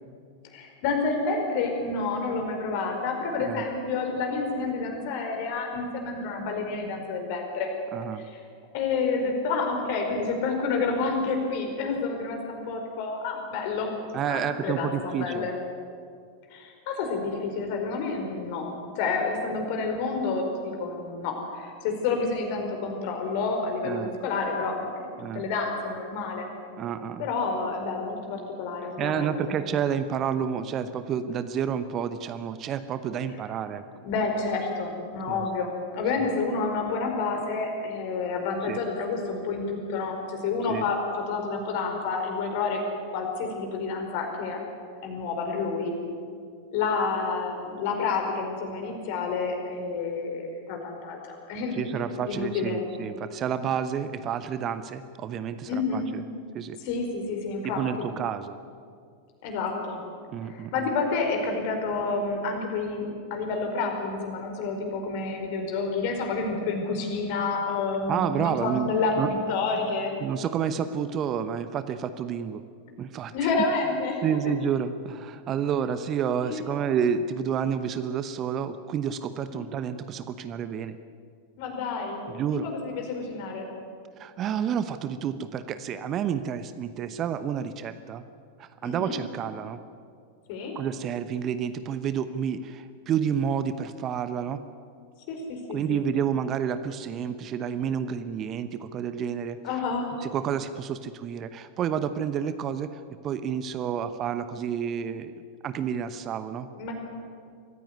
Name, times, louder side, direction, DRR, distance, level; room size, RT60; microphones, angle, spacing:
voice 1, 0.4-7.7 8.1-8.4 8.7-13.9 14.3-15.5 16.5-26.5 27.2-29.6 33.3-33.4 34.0-42.8 43.1-44.6 45.0-45.9 46.7-51.9 52.2-52.9 55.7-56.2 56.8-58.1 59.4-60.0 60.4-70.1 73.3-74.4 75.8-75.9 76.4-76.8 79.5-79.6 81.6-83.7 88.8-89.1 90.5-90.7 95.3-96.1 99.6-100.1 106.7-106.9, left 4 dB, 45° left, 3 dB, 4.9 m, -29 dB
voice 2, 7.9-8.3 14.1-15.5 23.8-24.1 25.2-25.4 26.8-27.3 29.0-33.8 35.3-35.4 38.7-38.8 40.7-40.8 51.8-56.2 56.5-56.8 57.6-58.6 60.3-60.7 68.1-68.9 69.2-69.3 70.2-72.6 73.0-73.3 74.2-80.9 82.3-82.7 84.2-88.2 88.8-89.8 90.7-94.6 95.7-99.6 100.3-103.0 103.2-105.3 105.6-106.7, right 8 dB, 30° right, 12 dB, 0.9 m, -29 dB
24.0 x 15.5 x 9.6 m, 2.3 s
figure-of-eight pair, 90°, 0 cm